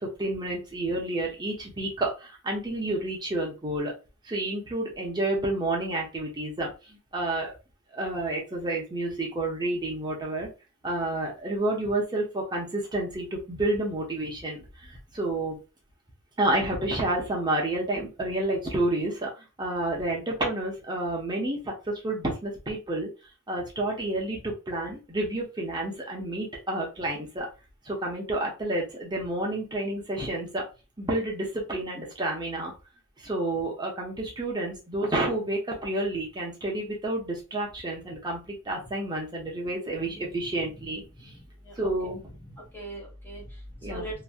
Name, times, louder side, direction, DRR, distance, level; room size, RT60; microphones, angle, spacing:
voice 1, 0.0-3.9 4.2-7.5 7.9-10.5 10.8-15.6 16.4-23.1 23.5-27.5 27.8-30.6 31.0-32.7 33.2-41.3 41.8-42.2 43.8-44.1, right 1 dB, 20° right, -2 dB, 0.8 m, -30 dB
voice 2, 40.0-40.9 41.1-41.7 42.0-42.1 42.5-44.2, right 1 dB, 10° left, -2 dB, 0.7 m, -42 dB
3.0 x 2.6 x 2.2 m, 0.30 s
head